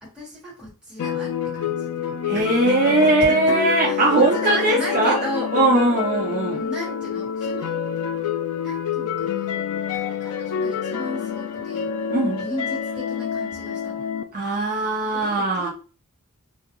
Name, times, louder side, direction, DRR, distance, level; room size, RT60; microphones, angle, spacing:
voice 1, 0.0-5.5 6.5-7.8 8.6-9.6 9.9-11.9 12.4-14.1 15.1-15.7, equal, 5° right, 1.3 m, -35 dB
sound 1, 1.0-14.2, left 7 dB, 70° left, 0.3 m, -27 dB
voice 2, 2.3-5.2 5.5-6.6 12.1-12.4 14.3-15.7, right 2 dB, 40° right, 0.4 m, -20 dB
2.3 x 2.2 x 2.9 m
head